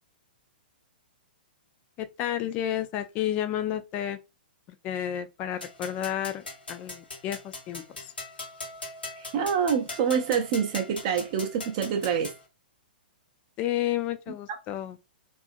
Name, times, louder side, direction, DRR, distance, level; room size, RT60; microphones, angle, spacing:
voice 1, 2.0-4.2 4.8-8.1 13.6-15.0, left 11 dB, 25° left, 0.3 m, -31 dB
sound 1, 5.6-12.4, left 3 dB, 75° left, 0.8 m, -41 dB
voice 2, 9.2-12.3, right 7 dB, 35° right, 0.5 m, -26 dB
2.7 x 2.4 x 2.5 m
figure-of-eight pair, 110°, 5 cm